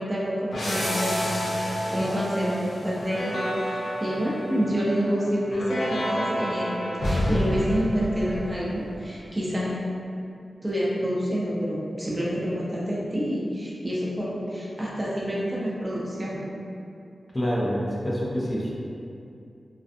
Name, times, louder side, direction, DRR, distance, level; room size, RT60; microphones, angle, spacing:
voice 1, 0.0-9.8 10.6-16.4, equal, 25° right, -7 dB, 0.5 m, -28 dB
sound 1, 0.5-9.0, equal, 90° left, 0.5 m, -29 dB
voice 2, 17.3-18.7, equal, 25° left, -6 dB, 0.5 m, -26 dB
2.4 x 2.3 x 2.5 m, 2.5 s
wide cardioid pair, 65°, 0 cm